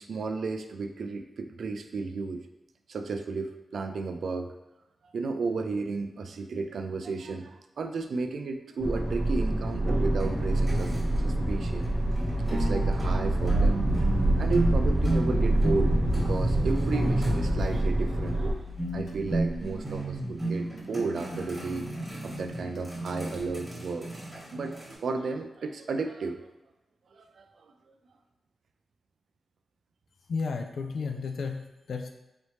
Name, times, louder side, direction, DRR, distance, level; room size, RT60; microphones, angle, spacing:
voice 1, 0.0-2.5 2.9-4.5 5.1-11.9 12.5-13.8 14.4-18.5 18.9-21.9 22.2-24.1 24.5-26.5 27.1-27.7, right 4 dB, 65° right, 6 dB, 0.3 m, -33 dB
sound 1, 8.8-18.5, right 1 dB, 45° right, 0.9 m, -26 dB
sound 2, 10.2-24.9, right 2 dB, ahead, 1.3 m, -35 dB
Engine starting, 10.3-23.6, left 4 dB, 45° left, 0.8 m, -42 dB
voice 2, 30.3-32.1, left 4 dB, 65° left, 5 dB, 0.4 m, -33 dB
4.0 x 3.2 x 3.1 m, 0.99 s
wide cardioid pair, 170°, 0 cm